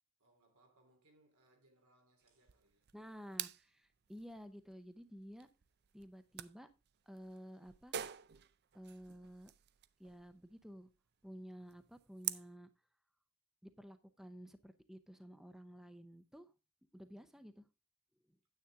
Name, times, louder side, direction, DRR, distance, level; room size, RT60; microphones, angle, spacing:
voice 1, 0.2-3.1, right 2 dB, 90° right, 3.4 m, -71 dB
sound 1, 2.2-12.5, right 10 dB, 50° right, 0.5 m, -48 dB
voice 2, 2.9-5.5 5.9-6.7 7.1-7.9 8.7-9.5 10.0-10.9 11.2-12.7 13.6-16.5 16.9-17.7 18.3-18.4, equal, ahead, 0.6 m, -53 dB
9.5 x 8.6 x 3.6 m
head